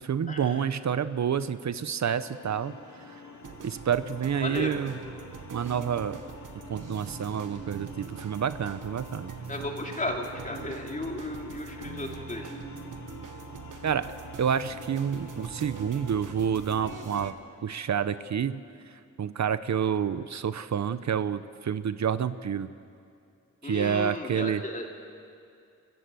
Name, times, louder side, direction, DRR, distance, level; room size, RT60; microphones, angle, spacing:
voice 1, 0.0-2.7 3.6-5.0 5.5-6.2 6.7-9.3 13.8-14.1 14.4-17.3 17.6-18.6 19.2-22.7 23.6-24.6, right 8 dB, 60° right, 13 dB, 0.7 m, -28 dB
sound 1, 2.1-17.3, left 5 dB, 70° left, 2.6 m, -47 dB
sound 2, 3.4-17.3, right 7 dB, 90° right, 1.2 m, -43 dB
voice 2, 4.4-4.7 9.5-12.5 23.6-24.8, left 1 dB, 25° left, 1 dB, 2.7 m, -34 dB
29.5 x 15.0 x 7.7 m, 2.5 s
wide cardioid pair, 120°, 31 cm